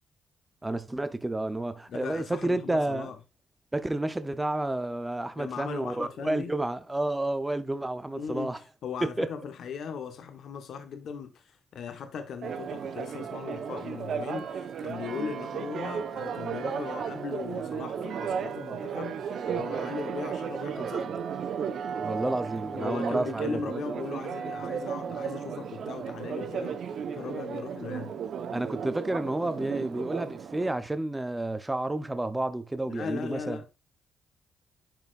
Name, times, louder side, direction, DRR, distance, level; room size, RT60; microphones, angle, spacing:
voice 1, 0.6-3.1 3.7-8.6 9.0-9.3 21.9-23.6 28.5-33.6, right 2 dB, 10° right, 0.8 m, -30 dB
voice 2, 1.9-3.2 5.3-6.6 8.1-8.5 8.8-21.2 22.7-26.8 27.1-28.1 32.9-33.7, left 6 dB, 65° left, 1.3 m, -38 dB
Church bell, 12.4-30.8, right 7 dB, 65° right, 1.0 m, -34 dB
10.5 x 4.5 x 2.5 m
cardioid pair, 95°, 0 cm